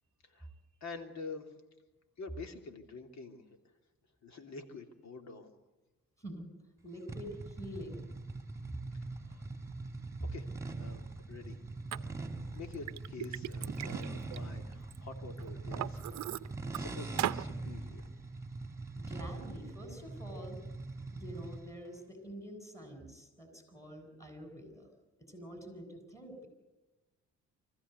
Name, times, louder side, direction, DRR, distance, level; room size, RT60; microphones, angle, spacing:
voice 1, 0.8-1.5 2.2-3.4 4.2-5.5 9.1-9.4 10.3-10.4 10.8-11.6 11.9-12.2 12.5-16.2 16.7-18.0, left 4 dB, 65° left, 5 dB, 3.2 m, -47 dB
voice 2, 6.8-8.1 18.9-20.6 21.1-24.9 25.2-26.5, equal, 10° left, 6 dB, 7.7 m, -47 dB
sound 1, 7.1-21.8, right 3 dB, 10° right, 2.7 m, -42 dB
Liquid, 11.9-12.0 12.5-15.0 15.4-16.8 17.2-17.5, right 13 dB, 65° right, 0.7 m, -38 dB
25.0 x 15.5 x 8.2 m, 1.1 s
cardioid pair, 90°, 30 cm